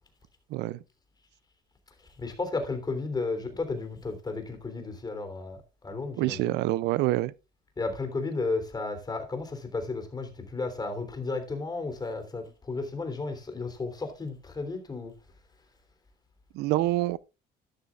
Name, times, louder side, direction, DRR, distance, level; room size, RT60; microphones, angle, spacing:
voice 1, 0.5-0.8 6.2-7.3 16.5-17.2, right 17 dB, 85° right, 0.5 m, -26 dB
voice 2, 2.2-6.5 7.8-15.1, left 3 dB, 25° left, 3.2 m, -33 dB
12.5 x 11.5 x 2.4 m
cardioid pair, 110°, 17 cm